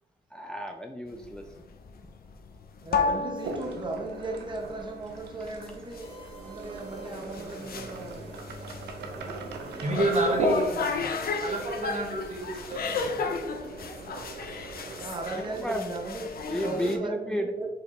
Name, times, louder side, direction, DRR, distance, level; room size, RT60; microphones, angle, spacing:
voice 1, 0.3-1.4 15.5-15.9 16.5-17.5, equal, 5° left, 3 dB, 0.4 m, -32 dB
sound 1, 1.1-17.0, left 5 dB, 65° left, 0.6 m, -34 dB
voice 2, 2.8-6.1 6.4-8.4 15.0-17.7, right 2 dB, 30° right, 2 dB, 0.9 m, -37 dB
sound 2, 3.4-15.6, right 3 dB, 90° right, 0.6 m, -38 dB
sound 3, 6.0-13.2, left 1 dB, 35° left, 1.2 m, -48 dB
voice 3, 9.0-14.2, right 2 dB, 45° right, 0 dB, 1.4 m, -32 dB
4.7 x 3.2 x 3.0 m, 1.0 s
cardioid pair, 65°, 17 cm